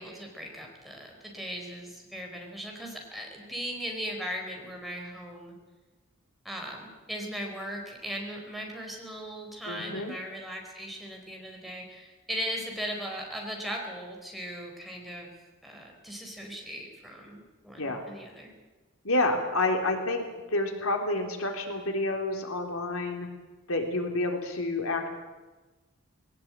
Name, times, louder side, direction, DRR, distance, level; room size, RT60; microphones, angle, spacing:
voice 1, 0.0-5.6 6.4-15.3 15.6-18.5, equal, ahead, 0 dB, 4.4 m, -38 dB
voice 2, 9.7-10.1 17.8-18.0 19.0-20.2 20.5-23.3 23.7-25.1, left 2 dB, 85° left, 3 dB, 3.6 m, -29 dB
20.5 x 18.5 x 8.9 m, 1.2 s
head